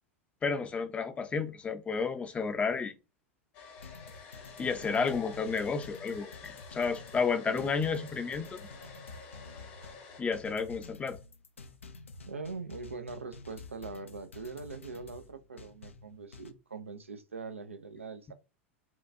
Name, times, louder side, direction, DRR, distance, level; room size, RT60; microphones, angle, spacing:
voice 1, 0.4-2.9 4.6-8.6 10.2-11.2, left 5 dB, 20° left, 0.5 m, -31 dB
Domestic sounds home sounds, 3.5-10.2, left 5 dB, 50° left, 1.0 m, -50 dB
sound 1, 3.8-16.5, left 3 dB, 75° left, 0.5 m, -50 dB
voice 2, 4.8-5.1 7.5-7.8 12.3-18.3, right 4 dB, 80° right, 0.5 m, -42 dB
4.4 x 2.3 x 2.6 m
figure-of-eight pair, 85°, 7 cm